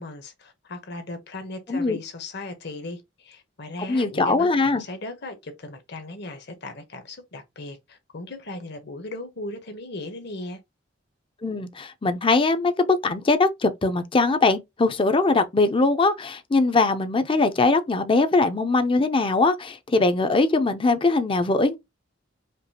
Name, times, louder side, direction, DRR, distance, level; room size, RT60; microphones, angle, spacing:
voice 1, 0.0-10.6, left 2 dB, 60° left, 1.1 m, -37 dB
voice 2, 3.9-4.8 11.4-21.8, left 3 dB, 25° left, 0.5 m, -21 dB
5.2 x 2.4 x 2.8 m
head